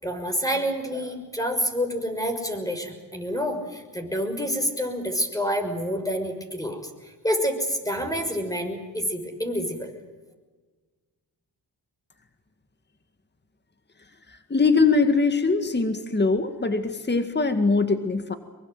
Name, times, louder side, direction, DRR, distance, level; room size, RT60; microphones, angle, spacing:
voice 1, 0.0-9.9, equal, 10° left, 5 dB, 6.1 m, -28 dB
voice 2, 14.3-18.4, left 4 dB, 25° left, 8 dB, 2.0 m, -22 dB
23.5 x 23.0 x 8.0 m, 1.3 s
cardioid pair, 75°, 39 cm